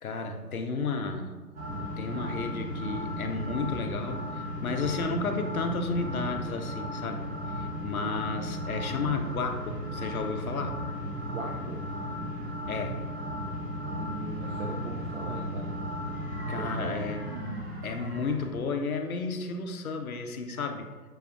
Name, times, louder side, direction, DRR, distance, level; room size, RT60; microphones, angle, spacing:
voice 1, 0.0-1.4 2.0-10.8 12.7-13.0 16.5-17.3 17.8-20.9, left 4 dB, 60° left, 6 dB, 0.6 m, -32 dB
sound 1, 1.6-18.5, equal, 35° right, 0.9 m, -35 dB
voice 2, 11.2-11.8 13.8-15.7 16.6-17.0, right 3 dB, 55° right, -1 dB, 0.5 m, -39 dB
6.1 x 2.3 x 3.5 m, 1.4 s
figure-of-eight pair, 145°, 49 cm